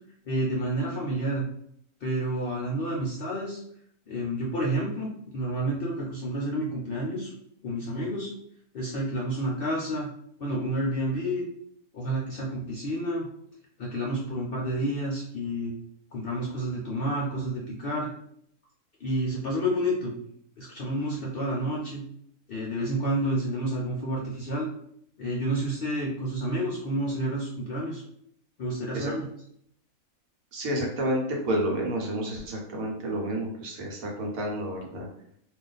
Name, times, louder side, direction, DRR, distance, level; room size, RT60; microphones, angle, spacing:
voice 1, 0.3-1.4 2.0-3.6 4.1-7.3 7.6-8.3 8.7-10.1 10.4-11.4 11.9-13.3 13.8-15.7 16.1-18.1 19.0-20.1 20.6-22.0 22.5-24.7 25.2-28.0 28.6-29.3, right 1 dB, 65° left, -3 dB, 0.6 m, -29 dB
voice 2, 30.5-35.1, right 1 dB, 75° right, 0 dB, 1.2 m, -30 dB
2.5 x 2.4 x 3.8 m, 0.70 s
omnidirectional pair, 1.5 m